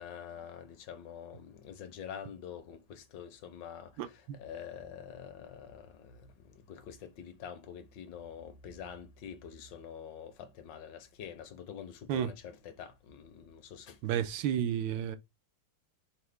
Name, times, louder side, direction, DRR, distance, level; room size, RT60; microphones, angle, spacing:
voice 1, 0.0-6.3 6.5-14.3, left 8 dB, 75° left, 1.3 m, -46 dB
voice 2, 4.0-4.4 12.1-12.3 14.0-15.2, right 9 dB, 85° right, 1.3 m, -32 dB
5.9 x 2.1 x 3.2 m
omnidirectional pair, 2.0 m